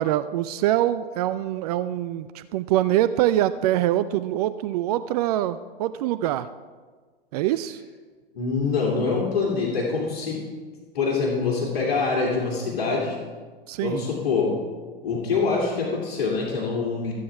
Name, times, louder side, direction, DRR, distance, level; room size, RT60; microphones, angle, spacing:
voice 1, 0.0-6.5 7.3-7.8 13.7-14.0, right 13 dB, 40° right, 13 dB, 0.4 m, -24 dB
voice 2, 8.3-10.4 10.9-13.2 13.8-14.5 15.0-17.1, left 4 dB, 55° left, -4 dB, 2.8 m, -25 dB
14.5 x 8.5 x 4.7 m, 1.4 s
figure-of-eight pair, 100°, 30 cm